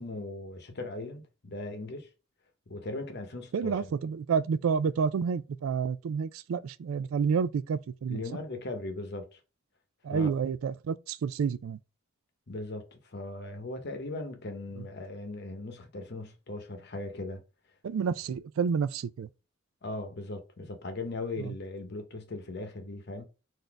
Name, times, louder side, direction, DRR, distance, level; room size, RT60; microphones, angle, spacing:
voice 1, 0.0-2.1 2.7-3.7 8.1-9.4 10.1-10.3 12.5-17.4 19.8-23.2, left 2 dB, 55° left, 0.8 m, -38 dB
voice 2, 3.5-8.2 10.0-11.8 14.8-14.9 17.8-19.3 21.4-21.5, right 6 dB, 85° right, 0.3 m, -29 dB
4.0 x 2.6 x 4.5 m
head